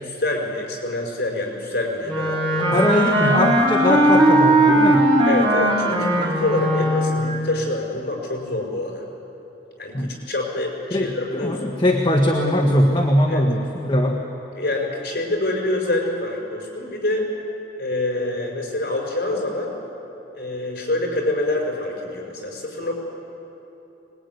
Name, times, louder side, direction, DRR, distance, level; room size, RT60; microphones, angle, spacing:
voice 1, 0.0-2.7 5.3-9.0 9.8-11.6 13.3-13.5 14.6-17.3 17.8-19.7 20.3-22.9, left 2 dB, 60° left, 0 dB, 5.4 m, -26 dB
Wind instrument woodwind instrument, 2.1-7.4, right 1 dB, 30° right, 3.9 m, -18 dB
voice 2, 2.7-5.1 9.9-10.1 10.9-14.2, left 1 dB, 25° left, 0 dB, 1.5 m, -20 dB
24.0 x 21.0 x 9.5 m, 3.0 s
head